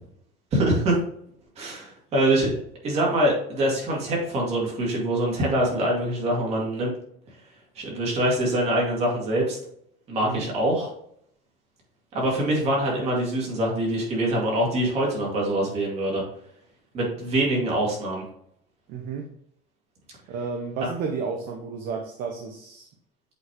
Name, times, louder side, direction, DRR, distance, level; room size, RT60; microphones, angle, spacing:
voice 1, 0.5-1.0 1.6-2.6 2.8-6.9 7.8-9.6 10.1-10.9 12.1-16.2 16.9-18.2, right 1 dB, 35° right, -2 dB, 2.1 m, -24 dB
voice 2, 18.9-19.3 20.3-22.9, right 5 dB, 50° right, 2 dB, 0.8 m, -32 dB
8.1 x 4.1 x 3.0 m, 0.69 s
cardioid pair, 175°, 19 cm